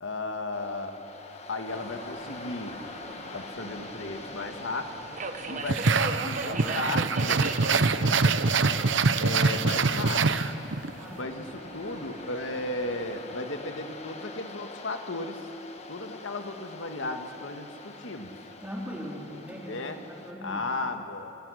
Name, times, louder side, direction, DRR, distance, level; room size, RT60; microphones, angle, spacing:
voice 1, 0.0-1.0 1.5-2.8 3.3-4.9 5.5-7.6 7.9-8.3 9.2-10.2 11.1-15.4 15.9-18.3 19.3-20.0 20.4-21.3, left 2 dB, 90° left, 5 dB, 1.8 m, -35 dB
Waves surf, 0.5-20.3, left 3 dB, 35° left, 1.6 m, -45 dB
Subway metro underground, 1.7-13.2, right 3 dB, 40° right, 1.3 m, -41 dB
sound 1, 5.7-10.9, right 4 dB, 75° right, 0.9 m, -24 dB
voice 2, 10.9-11.3 18.6-20.6, equal, 10° right, -3 dB, 3.9 m, -40 dB
28.5 x 25.0 x 6.5 m, 2.9 s
head